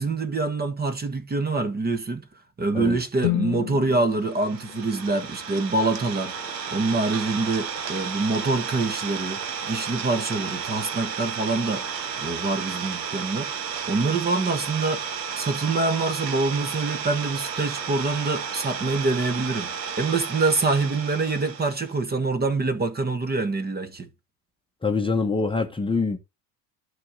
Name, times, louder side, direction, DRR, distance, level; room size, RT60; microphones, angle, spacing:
voice 1, 0.0-2.2 2.6-11.9 12.2-15.0 15.3-19.7 20.0-24.1, right 3 dB, 20° right, 1.3 m, -25 dB
sound 1, 3.2-7.3, left 22 dB, 40° left, 0.5 m, -34 dB
Idling, 4.2-21.9, right 6 dB, 85° right, 1.5 m, -33 dB
voice 2, 24.8-26.2, left 4 dB, 10° left, 1.1 m, -24 dB
10.5 x 3.8 x 6.5 m
hypercardioid pair, 85°, 50 cm